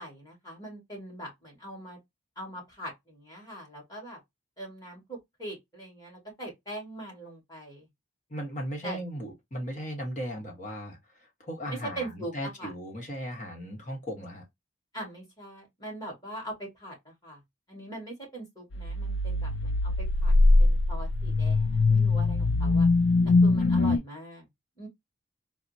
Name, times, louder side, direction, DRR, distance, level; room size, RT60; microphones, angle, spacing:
voice 1, 0.0-2.0 2.4-4.2 4.6-7.9 8.8-9.0 12.0-12.3 12.6-12.7 14.9-17.4 17.7-20.3 20.6-22.9 23.4-24.5 24.8-24.9, right 1 dB, 20° left, 1.9 m, -42 dB
voice 2, 8.3-14.5 23.6-24.0, equal, 40° left, 1.2 m, -37 dB
sound 1, 18.7-24.0, left 3 dB, 70° left, 0.4 m, -22 dB
4.0 x 2.1 x 2.6 m
head